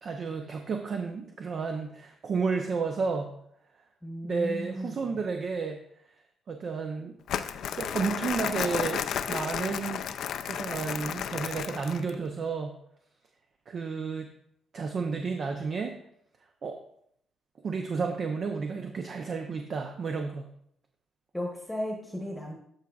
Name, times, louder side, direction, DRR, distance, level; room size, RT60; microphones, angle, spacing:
voice 1, 0.0-3.3 4.2-5.8 6.5-7.2 7.8-10.1 10.4-12.7 13.7-14.3 14.7-16.0 16.6-16.8 17.6-20.5, right 5 dB, 50° right, 4 dB, 0.6 m, -32 dB
voice 2, 4.0-5.1 21.3-22.5, equal, 5° left, 0 dB, 1.1 m, -35 dB
Crumpling crinkling, 7.3-12.1, left 8 dB, 70° left, 0.4 m, -33 dB
13.0 x 4.7 x 2.4 m, 0.70 s
cardioid pair, 90°, 0 cm